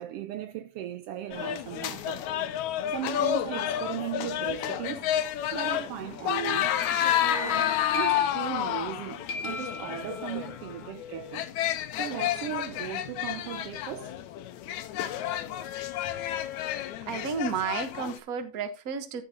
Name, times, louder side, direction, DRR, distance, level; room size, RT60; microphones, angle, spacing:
voice 1, 0.0-2.3 2.9-5.1 5.5-6.8 7.2-11.5 11.9-14.2, right 12 dB, 85° right, 1.3 m, -37 dB
sound 1, 1.3-18.2, left 11 dB, 80° left, 2.2 m, -30 dB
sound 2, 6.2-9.0 9.3-10.6, left 3 dB, 50° left, 2.6 m, -38 dB
voice 2, 17.1-19.2, right 5 dB, 50° right, 1.1 m, -32 dB
14.0 x 6.9 x 2.8 m
omnidirectional pair, 3.4 m